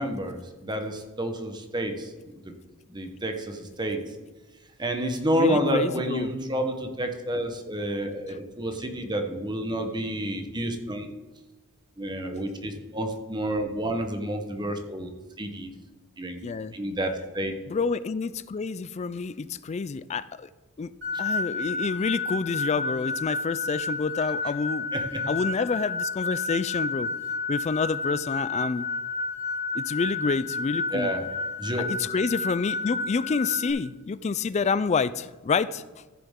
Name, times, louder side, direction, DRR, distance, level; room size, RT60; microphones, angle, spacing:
voice 1, 0.0-2.1 2.4-2.6 2.9-4.0 4.8-11.1 12.0-15.1 15.4-15.7 16.2-16.4 16.7-17.5 24.9-25.2 30.9-31.3 31.6-31.9, right 1 dB, 20° right, 5 dB, 1.0 m, -29 dB
voice 2, 5.4-6.3 8.3-8.4 16.4-16.8 17.7-20.5 20.8-20.9 21.2-24.9 25.3-27.1 27.5-28.9 29.7-31.1 31.9-35.8, left 4 dB, 30° left, 16 dB, 0.3 m, -28 dB
sound 1, 21.0-33.7, left 3 dB, 50° right, 2.3 m, -31 dB
15.0 x 6.7 x 3.7 m, 1.2 s
head